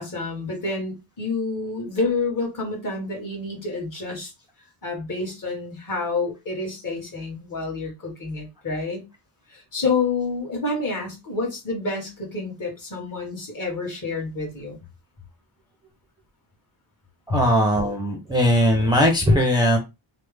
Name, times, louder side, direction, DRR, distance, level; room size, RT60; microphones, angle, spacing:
voice 1, 0.0-4.3 4.8-9.0 9.5-14.8 17.3-17.4, left 3 dB, 45° left, 1.5 m, -28 dB
voice 2, 17.3-19.8, equal, 10° right, 0.5 m, -19 dB
3.1 x 2.0 x 3.2 m
wide cardioid pair, 145°, 45 cm